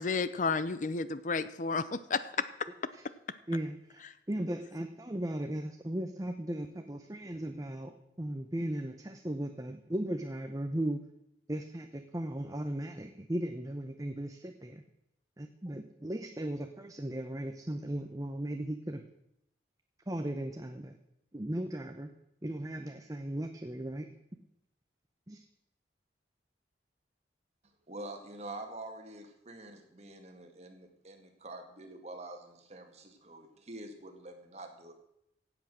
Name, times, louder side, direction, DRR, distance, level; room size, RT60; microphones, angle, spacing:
voice 1, 0.0-2.5, left 4 dB, 45° left, 14 dB, 0.6 m, -32 dB
voice 2, 3.5-11.0 11.5-14.8 15.4-19.0 20.1-20.9 21.3-22.1 22.4-24.1 25.3-25.4, right 1 dB, 20° right, 6 dB, 0.8 m, -37 dB
voice 3, 27.9-34.9, right 2 dB, 35° right, 4 dB, 1.9 m, -46 dB
16.0 x 8.1 x 6.3 m, 0.80 s
head